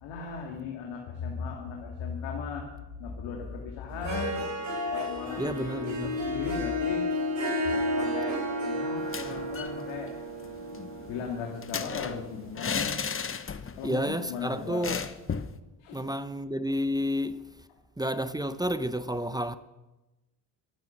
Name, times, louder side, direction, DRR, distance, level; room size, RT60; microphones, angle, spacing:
voice 1, 0.0-2.7 2.9-4.4 4.9-7.0 7.6-10.1 11.1-13.0 13.8-14.8 15.8-16.0, left 6 dB, 75° left, 2.7 m, -37 dB
Harp, 3.9-12.5, left 1 dB, 35° right, 6.0 m, -32 dB
voice 2, 5.4-6.2 13.8-15.0 15.9-17.5 18.0-19.6, equal, 10° right, 0.9 m, -30 dB
sound 1, 9.0-9.8 10.1-10.2 10.5-13.9 14.2-14.3 14.8-15.6, left 6 dB, 25° left, 1.1 m, -34 dB
23.5 x 9.2 x 6.0 m
supercardioid pair, 65°, 47 cm